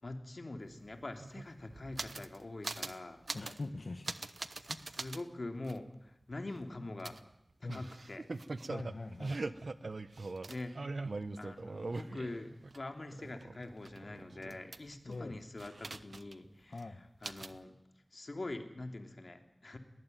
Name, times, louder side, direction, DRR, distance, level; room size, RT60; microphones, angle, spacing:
voice 1, 0.0-3.2 4.8-7.2 7.6-8.3 10.5-11.0 11.3-17.8 18.1-19.8, left 2 dB, 60° left, 6 dB, 3.2 m, -44 dB
sound 1, 0.7-0.8 1.0-2.4 2.6-3.0 3.3-3.6 4.0-5.2 5.7-5.8 7.0-12.8 13.1-15.1 15.6-16.5 16.7-16.8 17.2-17.6, right 3 dB, 85° right, 1.0 m, -42 dB
voice 2, 3.3-4.3 4.7-4.9 7.6-7.8 8.7-9.4 15.0-15.4 16.7-17.0, left 3 dB, 80° left, 6 dB, 1.5 m, -43 dB
21.0 x 19.5 x 9.4 m, 0.79 s
wide cardioid pair, 60°, 0 cm